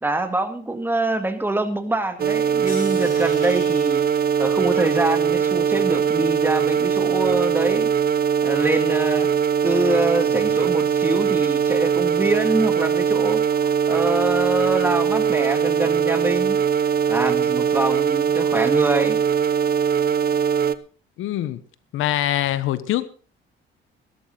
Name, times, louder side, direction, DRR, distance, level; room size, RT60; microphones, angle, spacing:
voice 1, 0.0-4.0 4.4-7.9 8.4-9.3 9.6-16.6 17.1-19.2, right 2 dB, 10° right, 2.2 m, -25 dB
sound 1, 2.2-20.7, right 7 dB, 45° right, 0.9 m, -21 dB
sound 2, 2.6-7.8 8.2-8.9 9.7-10.0, left 4 dB, 40° left, 6.1 m, -46 dB
voice 2, 21.2-21.6 21.9-23.1, left 13 dB, 75° left, 1.2 m, -23 dB
16.5 x 13.5 x 3.9 m
cardioid pair, 115°, 21 cm